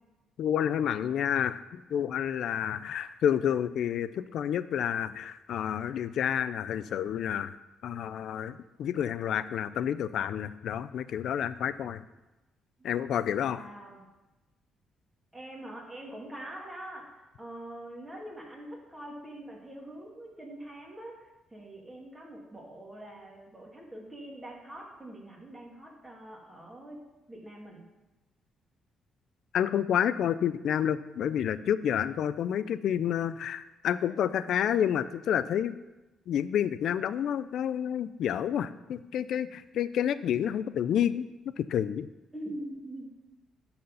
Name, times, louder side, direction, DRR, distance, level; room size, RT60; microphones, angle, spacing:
voice 1, 0.4-7.6 7.8-12.0 12.8-13.6 29.5-35.8 36.3-41.3 41.6-42.1, left 9 dB, 70° left, 14 dB, 0.4 m, -29 dB
voice 2, 13.4-14.0 15.3-21.1 21.5-27.0 27.3-27.8 42.3-43.1, right 1 dB, 15° right, -2 dB, 2.5 m, -44 dB
12.5 x 4.3 x 5.5 m, 1.1 s
cardioid pair, 90°, 0 cm